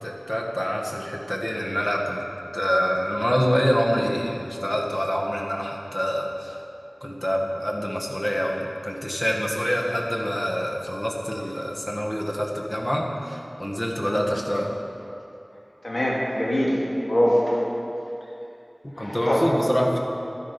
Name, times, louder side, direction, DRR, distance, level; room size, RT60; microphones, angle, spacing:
voice 1, 0.0-2.2 2.5-6.6 7.0-14.7 18.8-20.0, equal, 30° left, -1 dB, 1.7 m, -26 dB
voice 2, 15.8-17.6 18.9-19.4, equal, 80° left, -5 dB, 2.7 m, -23 dB
12.0 x 10.5 x 5.4 m, 2.9 s
wide cardioid pair, 45°, 0 cm